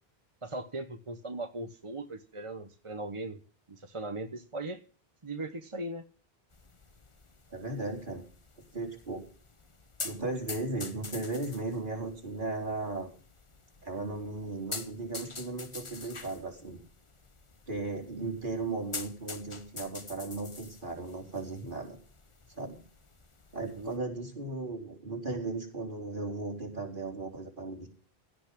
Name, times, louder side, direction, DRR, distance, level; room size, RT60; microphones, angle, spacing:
voice 1, 0.4-3.4 3.7-4.8 5.2-6.0 23.6-23.9, right 2 dB, 30° right, 7 dB, 1.1 m, -39 dB
sound 1, 6.5-24.0, left 3 dB, 30° left, 1.0 m, -46 dB
voice 2, 7.5-8.2 8.7-9.2 10.0-13.1 13.8-16.8 17.7-22.0 22.6-22.8 23.5-27.9, right 2 dB, 55° right, 0 dB, 4.5 m, -36 dB
16.5 x 5.9 x 8.4 m, 0.39 s
omnidirectional pair, 1.0 m